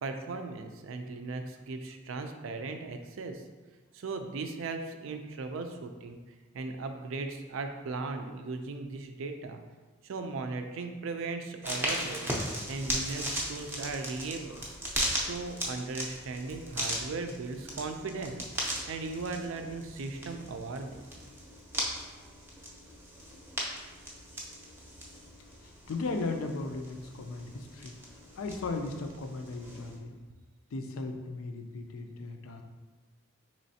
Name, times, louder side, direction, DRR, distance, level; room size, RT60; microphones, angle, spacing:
voice 1, 0.0-3.4 3.9-6.2 6.5-9.6 10.0-12.3 12.7-14.6 15.1-18.4 18.9-21.0, right 3 dB, 75° right, 6 dB, 0.4 m, -37 dB
sound 1, 11.6-30.0, right 1 dB, 10° right, 0.5 m, -38 dB
voice 2, 25.6-28.0 28.3-30.2 30.7-32.6, left 3 dB, 85° left, 5 dB, 0.4 m, -37 dB
4.1 x 3.1 x 2.7 m, 1.3 s
head